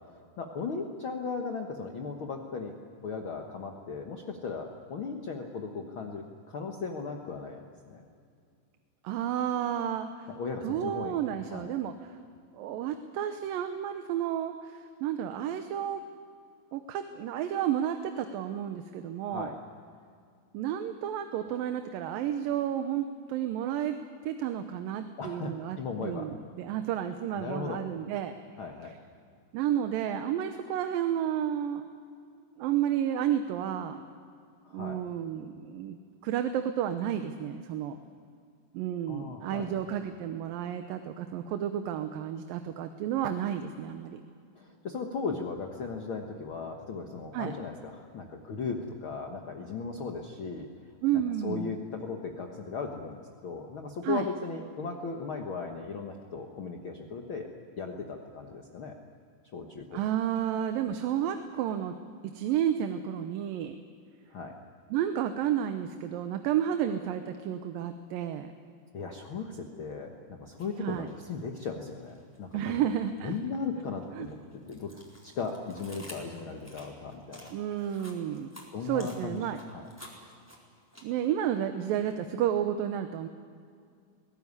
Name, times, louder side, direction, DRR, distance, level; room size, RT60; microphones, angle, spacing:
voice 1, 0.1-2.8 3.0-8.0 10.4-11.1 11.5-11.7 19.3-19.6 25.2-26.3 27.3-27.8 28.6-28.9 34.6-35.0 39.1-39.8 44.6-50.7 51.4-58.9 59.5-60.0 64.3-64.5 68.9-72.9 73.2-74.4 74.7-74.9 75.2-77.5 77.8-78.0 78.7-79.4 79.7-79.8, left 4 dB, 55° left, 3 dB, 1.6 m, -37 dB
voice 2, 9.0-10.3 10.6-12.2 12.5-16.0 16.7-19.5 20.5-28.4 28.9-29.0 29.5-31.9 32.6-34.0 34.7-36.0 36.2-38.0 38.7-44.2 47.3-47.5 51.0-51.7 54.0-54.3 59.9-61.9 62.2-63.8 64.9-68.5 70.8-71.1 72.5-73.3 74.1-74.3 77.5-78.5 78.8-79.6 80.1-80.3 81.0-83.3, right 10 dB, 85° right, 8 dB, 2.6 m, -31 dB
sound 1, 70.5-70.7 71.1-72.6 73.0-81.5, equal, 5° left, 4.1 m, -51 dB
21.5 x 18.0 x 9.6 m, 2.3 s
omnidirectional pair, 4.0 m